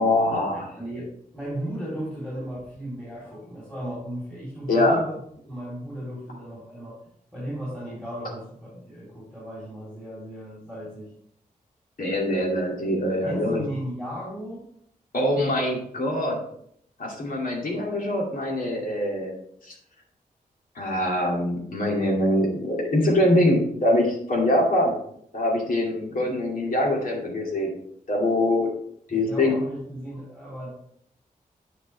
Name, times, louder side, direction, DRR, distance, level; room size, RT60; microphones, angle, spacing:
voice 1, 0.0-0.7 4.7-5.0 12.0-13.6 15.1-16.4 17.0-19.3 19.6-19.7 20.7-24.9 25.3-27.7 28.1-28.7 29.1-29.6, left 1 dB, 70° left, -2 dB, 2.4 m, -23 dB
voice 2, 0.5-7.0 7.3-11.1 13.2-14.7 29.1-30.7, equal, 5° left, -7 dB, 3.6 m, -35 dB
9.8 x 5.4 x 3.4 m, 0.68 s
wide cardioid pair, 90°, 15 cm